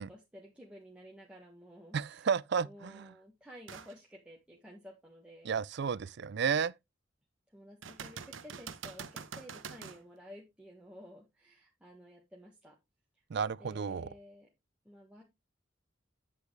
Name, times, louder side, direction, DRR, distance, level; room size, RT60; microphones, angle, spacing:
voice 1, 0.0-2.3 2.6-5.5 7.5-12.7 13.6-14.5 14.8-15.2, equal, 5° right, 1.6 m, -53 dB
voice 2, 1.9-3.1 5.4-6.7 13.3-14.1, right 6 dB, 60° right, 0.4 m, -32 dB
sound 1, 3.7-4.0 4.5-4.6 7.8-10.0 13.7-13.8, right 6 dB, 80° right, 0.9 m, -45 dB
8.5 x 8.3 x 3.2 m
head